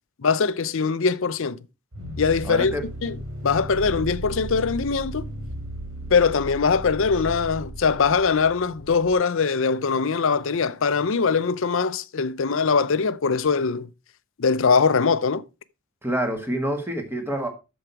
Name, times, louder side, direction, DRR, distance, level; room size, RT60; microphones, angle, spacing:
voice 1, 0.2-1.6 2.2-2.7 3.0-3.2 3.4-5.2 6.1-13.9 14.4-15.4, left 5 dB, 60° left, 0.6 m, -22 dB
sound 1, 1.9-9.1, right 1 dB, 65° right, 3.1 m, -35 dB
voice 2, 2.4-2.8 16.0-17.5, right 1 dB, 10° right, 1.7 m, -27 dB
8.5 x 7.1 x 4.7 m
head